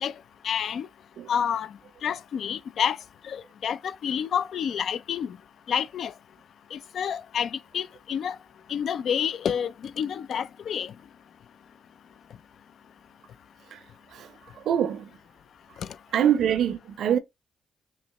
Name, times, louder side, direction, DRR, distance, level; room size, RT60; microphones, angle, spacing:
voice 1, 0.4-0.9 1.3-1.7 2.0-3.0 3.2-5.4 5.7-6.1 6.7-8.4 8.7-10.9, left 8 dB, 70° left, 0.3 m, -29 dB
voice 2, 14.7-15.1 16.1-17.2, right 9 dB, 75° right, 0.6 m, -24 dB
5.6 x 2.1 x 3.1 m
supercardioid pair, 60°, 0 cm